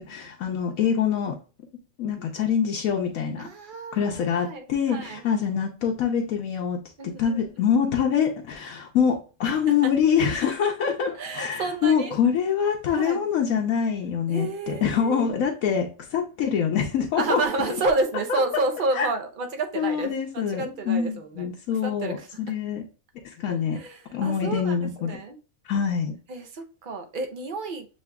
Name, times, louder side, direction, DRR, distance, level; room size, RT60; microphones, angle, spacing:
voice 1, 0.0-1.4 2.0-3.5 3.9-17.4 18.3-18.6 19.0-19.1 19.8-22.8 23.2-23.8 24.1-25.2 25.7-26.1, left 7 dB, 80° left, 1.1 m, -25 dB
voice 2, 3.4-5.2 7.0-7.5 9.8-9.9 11.1-12.1 12.9-13.2 14.3-15.3 17.1-21.5 21.8-22.4 23.5-25.4 26.3-27.9, right 3 dB, 50° right, 0.7 m, -30 dB
7.3 x 2.8 x 2.2 m
omnidirectional pair, 1.5 m